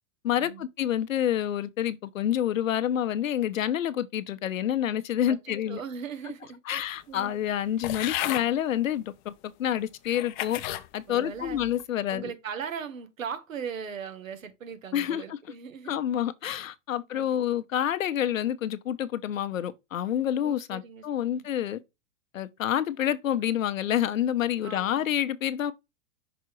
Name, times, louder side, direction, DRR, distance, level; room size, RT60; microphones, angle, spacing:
voice 1, 0.2-5.8 6.7-10.6 10.9-12.3 14.9-15.4 15.9-21.8 22.3-25.7, left 10 dB, 80° left, 1.0 m, -28 dB
voice 2, 5.7-6.8 7.1-7.3 11.1-11.6 12.1-16.0 17.2-17.6 20.4-21.5 24.6-25.1, right 7 dB, 85° right, 1.5 m, -39 dB
sound 1, 7.8-8.5 9.3-9.4 10.0-10.9 11.4-11.8, left 15 dB, 35° left, 0.6 m, -33 dB
6.0 x 3.6 x 4.5 m
hypercardioid pair, 125°, 39 cm